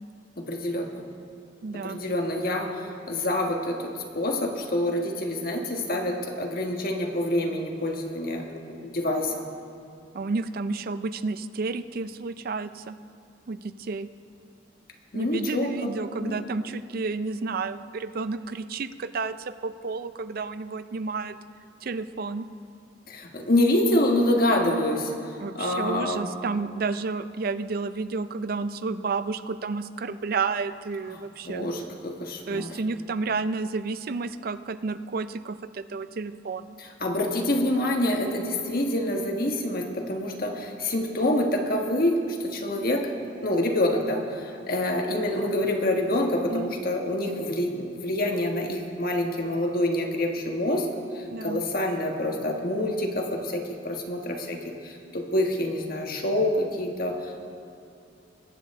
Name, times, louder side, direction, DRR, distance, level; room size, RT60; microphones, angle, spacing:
voice 1, 0.4-1.1 1.7-9.5 15.1-16.5 23.1-26.3 31.4-32.7 36.8-43.1 43.4-50.9 51.1-57.4, left 1 dB, 55° left, 2 dB, 1.4 m, -27 dB
voice 2, 1.6-2.0 10.1-13.0 13.5-14.1 15.1-21.4 21.8-22.5 25.4-31.7 32.5-36.8 46.5-46.7 51.3-51.6, right 4 dB, 55° right, 12 dB, 0.4 m, -31 dB
21.5 x 8.7 x 3.6 m, 2.6 s
head